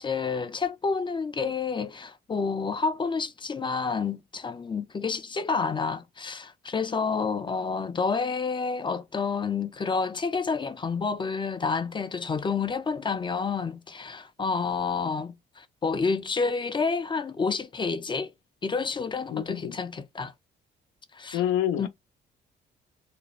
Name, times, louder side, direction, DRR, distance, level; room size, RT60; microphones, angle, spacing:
voice 1, 0.0-18.3 18.6-20.3 21.1-21.4 21.8-21.9, left 5 dB, 25° left, 0.4 m, -29 dB
voice 2, 19.3-19.8 21.3-21.9, left 11 dB, 85° left, 0.5 m, -27 dB
2.4 x 2.1 x 2.9 m
cardioid pair, 90°, 20 cm